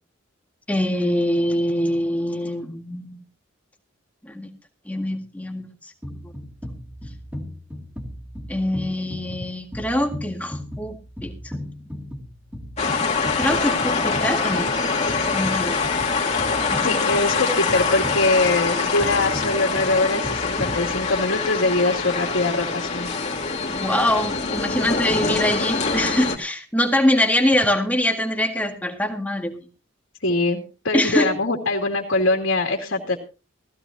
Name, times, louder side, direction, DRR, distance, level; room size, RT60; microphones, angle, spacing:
voice 1, 0.7-3.2 4.2-4.5 4.9-5.7 8.5-11.0 11.2-11.6 11.9-12.1 13.4-14.7 15.3-15.9 16.7-17.1 23.7-29.6 30.9-31.3, left 1 dB, 10° left, 3 dB, 1.9 m, -24 dB
sound 1, 6.0-21.4, left 1 dB, 10° right, 2.6 m, -37 dB
sound 2, 12.8-26.4, left 4 dB, 35° left, 2.6 m, -24 dB
voice 2, 16.8-23.1 30.2-33.2, left 2 dB, 75° left, 1 dB, 2.5 m, -22 dB
18.0 x 15.5 x 2.8 m, 0.33 s
head